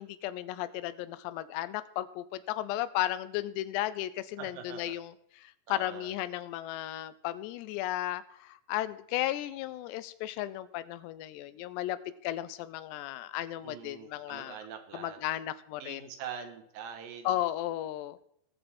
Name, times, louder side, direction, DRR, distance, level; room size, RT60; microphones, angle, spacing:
voice 1, 0.0-12.0 12.2-14.6 14.9-16.1 17.3-18.2, left 14 dB, 85° left, 14 dB, 2.8 m, -35 dB
voice 2, 4.4-5.0 5.7-6.1 13.6-15.2 15.8-17.4, right 7 dB, 65° right, 5 dB, 2.7 m, -44 dB
20.0 x 6.7 x 4.3 m, 0.72 s
omnidirectional pair, 5.0 m